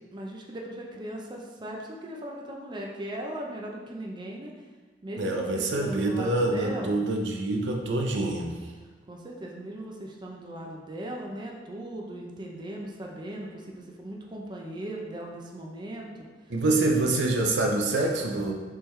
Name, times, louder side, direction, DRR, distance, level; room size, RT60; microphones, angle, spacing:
voice 1, 0.1-4.5 5.0-7.0 9.1-16.1 16.9-17.2, right 1 dB, 25° right, -1 dB, 0.5 m, -38 dB
voice 2, 5.2-8.5 16.5-18.5, right 2 dB, 85° right, 2 dB, 0.6 m, -26 dB
4.5 x 3.5 x 3.2 m, 1.4 s
head